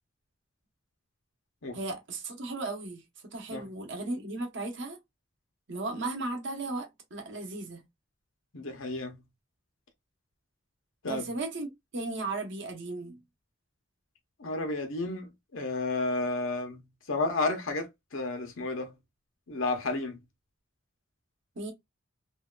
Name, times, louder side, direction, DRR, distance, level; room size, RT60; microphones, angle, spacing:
voice 1, 1.7-3.0 3.3-5.0 5.7-7.8 11.1-13.2 21.6-21.7, right 2 dB, 60° right, 0.9 m, -36 dB
voice 2, 8.5-9.2 11.0-11.3 14.4-18.9 19.5-20.2, left 2 dB, 80° left, 0.9 m, -32 dB
2.7 x 2.2 x 2.2 m
head